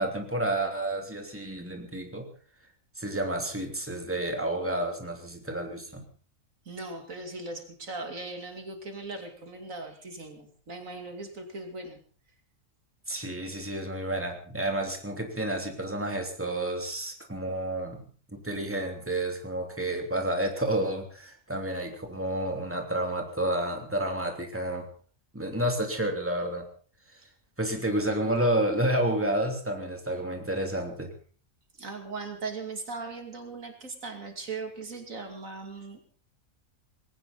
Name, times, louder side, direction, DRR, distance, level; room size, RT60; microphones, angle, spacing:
voice 1, 0.0-2.3 3.0-6.0 13.1-24.9 25.3-26.6 27.1-27.2 27.6-31.1, right 1 dB, 10° right, 3 dB, 2.9 m, -30 dB
voice 2, 6.7-12.0 31.8-36.0, right 3 dB, 75° right, 4 dB, 3.1 m, -39 dB
20.0 x 17.5 x 4.1 m, 0.42 s
omnidirectional pair, 1.4 m